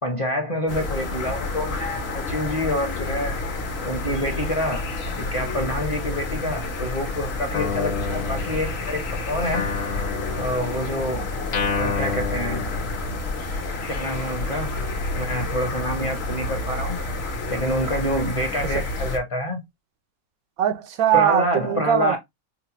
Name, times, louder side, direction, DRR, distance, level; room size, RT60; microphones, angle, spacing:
voice 1, 0.0-3.4 3.8-4.8 5.2-9.7 10.4-11.2 11.8-12.6 13.9-14.7 15.1-17.0 17.5-19.6 21.1-22.2, equal, 30° left, 0.7 m, -27 dB
sound 1, 0.7-19.2, left 2 dB, 55° left, 1.0 m, -29 dB
Guitar, 7.5-9.0 9.5-13.4, left 5 dB, 70° left, 1.1 m, -30 dB
voice 2, 20.6-22.2, right 10 dB, 90° right, 1.2 m, -21 dB
4.8 x 2.1 x 2.9 m
omnidirectional pair, 1.5 m